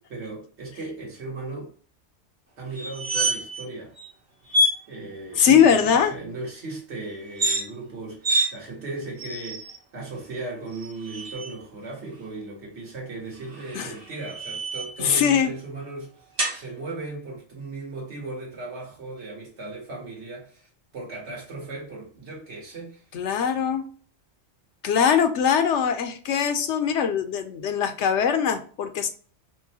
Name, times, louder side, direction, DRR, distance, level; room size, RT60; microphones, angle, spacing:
voice 1, 0.1-1.7 2.6-3.9 4.9-16.2 16.5-23.0, right 2 dB, 70° right, 1.7 m, -37 dB
sound 1, 2.8-3.7 4.0-4.1 4.5-4.8 7.2-7.6 8.2-8.5 9.2-9.8 10.7-11.5 13.4-15.0 16.4-16.6, right 1 dB, 50° right, 1.2 m, -27 dB
voice 2, 5.4-6.1 13.7-13.9 15.0-15.5 23.1-23.8 24.8-29.1, left 7 dB, 75° left, 0.9 m, -21 dB
4.6 x 2.2 x 2.7 m
omnidirectional pair, 1.2 m